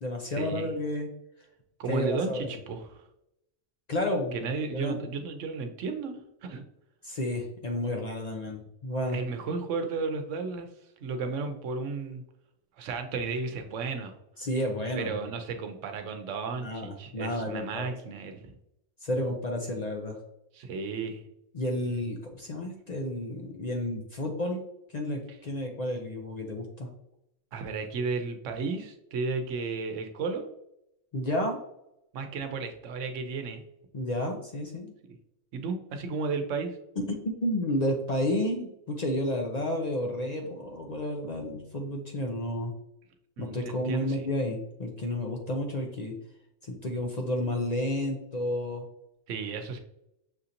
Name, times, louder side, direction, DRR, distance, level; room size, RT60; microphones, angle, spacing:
voice 1, 0.0-1.1 1.9-2.5 3.9-4.4 4.7-5.0 7.0-9.2 14.4-15.3 16.6-18.1 19.0-20.2 21.5-24.6 24.9-26.9 31.1-31.6 33.9-34.9 37.0-42.7 43.4-46.1 46.6-48.8, left 1 dB, 50° left, 1 dB, 0.5 m, -31 dB
voice 2, 1.8-3.0 4.3-6.7 9.1-10.7 11.0-12.2 12.8-14.1 15.0-18.5 20.5-21.2 27.5-30.5 32.1-33.6 35.5-36.8 43.4-44.2 49.3-49.8, right 4 dB, 90° right, 6 dB, 1.0 m, -33 dB
6.2 x 2.8 x 2.5 m, 0.82 s
omnidirectional pair, 1.2 m